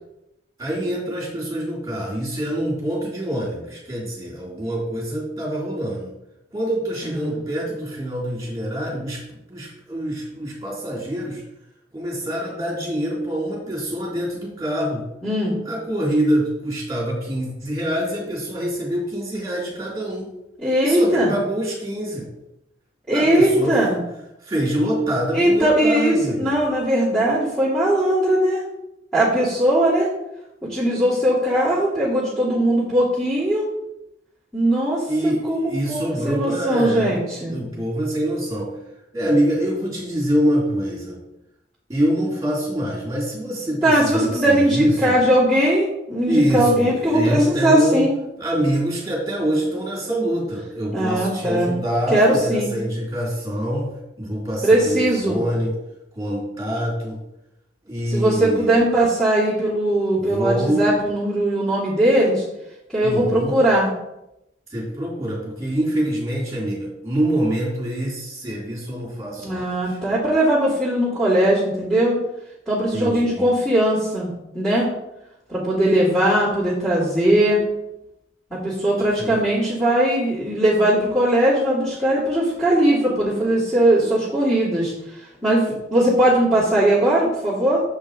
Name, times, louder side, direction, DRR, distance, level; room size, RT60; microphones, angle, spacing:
voice 1, 0.6-6.1 6.5-11.4 11.9-15.0 15.6-20.3 20.8-22.3 23.1-23.8 24.4-26.6 35.1-37.2 37.5-38.7 39.1-41.2 41.9-45.2 46.3-48.1 48.4-55.7 56.1-57.2 57.8-58.8 60.2-60.9 63.0-63.6 64.7-70.0 72.9-73.5 79.1-79.4, equal, 20° right, -3 dB, 3.2 m, -25 dB
voice 2, 7.0-7.4 15.2-15.6 20.6-21.3 23.1-24.0 25.3-28.6 29.1-30.1 30.6-33.6 34.5-37.6 43.8-48.1 50.9-51.8 52.1-52.7 54.6-55.4 58.1-62.4 62.9-63.9 69.4-72.2 72.7-74.9 75.5-77.6 78.5-84.9 85.4-87.8, right 1 dB, 5° left, -12 dB, 2.8 m, -19 dB
7.3 x 5.4 x 5.0 m, 0.87 s
head